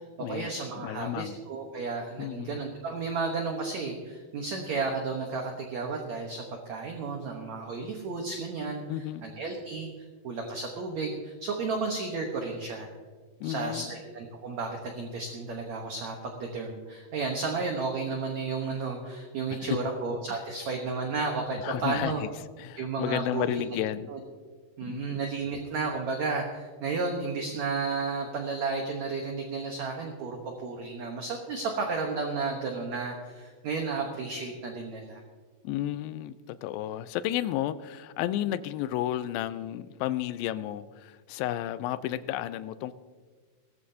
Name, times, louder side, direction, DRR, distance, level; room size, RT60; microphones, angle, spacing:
voice 1, 0.2-9.9 10.2-12.9 13.4-22.2 22.8-23.8 24.1-24.2 24.8-35.2, right 4 dB, 65° right, 2 dB, 1.9 m, -33 dB
voice 2, 0.8-1.4 2.2-2.6 8.9-9.3 13.4-13.9 19.5-19.8 20.3-20.4 21.6-22.3 22.6-24.1 24.9-25.2 35.6-42.9, left 13 dB, 80° left, 14 dB, 2.2 m, -32 dB
19.0 x 14.0 x 2.8 m, 1.5 s
omnidirectional pair, 4.4 m